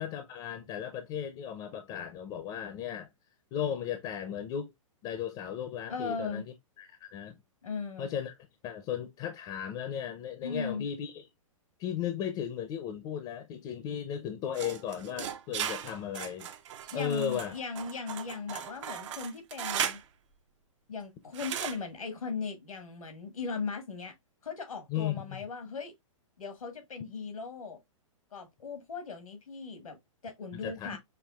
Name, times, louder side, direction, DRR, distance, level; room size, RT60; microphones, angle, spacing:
voice 1, 0.0-3.1 3.5-4.7 5.0-6.4 6.8-7.4 8.0-8.3 8.6-11.2 11.8-16.5 16.9-17.5 24.9-25.4 30.5-31.0, left 9 dB, 30° left, 0.5 m, -36 dB
voice 2, 5.9-6.4 7.6-8.1 10.4-10.9 16.9-20.0 20.9-24.1 24.4-25.9 26.4-27.8 28.3-31.0, left 4 dB, 90° left, 1.5 m, -38 dB
sound 1, 14.5-20.0 21.3-21.8, right 9 dB, 60° right, 0.6 m, -37 dB
5.6 x 2.3 x 2.3 m
hypercardioid pair, 125°, 17 cm